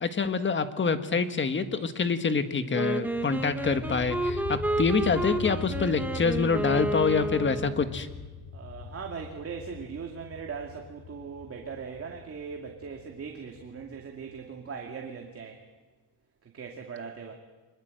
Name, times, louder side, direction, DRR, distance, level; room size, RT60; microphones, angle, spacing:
voice 1, 0.0-8.1, left 5 dB, 30° left, 9 dB, 1.6 m, -26 dB
Wind instrument woodwind instrument, 2.7-7.9, right 1 dB, 5° right, 1.6 m, -31 dB
sound 1, 3.0-14.6, left 6 dB, 75° left, 3.4 m, -41 dB
voice 2, 8.5-15.6 16.5-17.3, right 6 dB, 35° right, 2 dB, 2.4 m, -39 dB
24.5 x 21.5 x 7.8 m, 1.3 s
cardioid pair, 135°, 38 cm